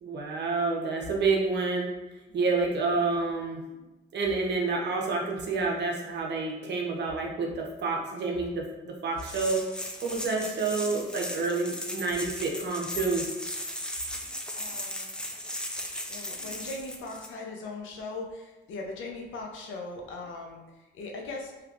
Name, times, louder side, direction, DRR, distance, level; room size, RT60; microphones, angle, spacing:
voice 1, 0.0-1.9 2.3-3.6 4.1-9.6 10.0-13.3, right 3 dB, 60° right, 0 dB, 0.7 m, -29 dB
sound 1, 9.2-17.3, left 1 dB, 5° left, 0.4 m, -37 dB
voice 2, 14.2-15.2 16.1-21.5, left 3 dB, 80° left, 0 dB, 0.7 m, -40 dB
3.3 x 2.9 x 2.4 m, 1.1 s
cardioid pair, 90°, 20 cm